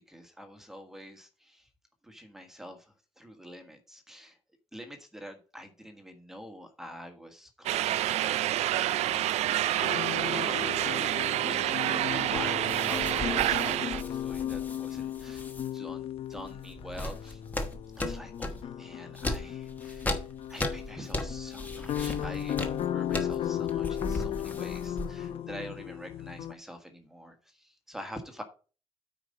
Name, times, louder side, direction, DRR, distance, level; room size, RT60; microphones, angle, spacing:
voice 1, 0.1-1.6 2.0-2.8 3.2-4.4 4.7-17.4 18.0-20.2 20.5-22.6 22.8-28.4, equal, 5° right, 5 dB, 1.4 m, -46 dB
sound 1, 7.7-14.0, right 13 dB, 70° right, 0.4 m, -28 dB
sound 2, 9.8-26.5, left 10 dB, 55° left, 0.8 m, -36 dB
sound 3, 12.7-15.7 16.3-18.7 19.2-25.3, left 1 dB, 15° left, 1.1 m, -37 dB
9.0 x 5.0 x 5.2 m, 0.35 s
cardioid pair, 160°, 12 cm